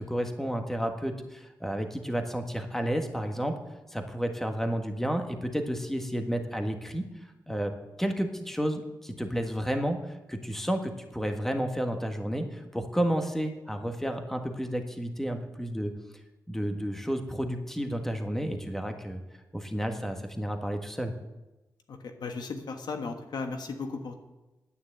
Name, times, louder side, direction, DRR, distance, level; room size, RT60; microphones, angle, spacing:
voice 1, 0.0-3.5 3.9-7.1 7.5-15.9 16.5-19.2 19.5-21.1, equal, 5° left, 5 dB, 1.6 m, -31 dB
voice 2, 21.9-24.2, left 4 dB, 75° left, 5 dB, 1.4 m, -36 dB
9.8 x 9.4 x 7.9 m, 1.0 s
cardioid pair, 70°, 7 cm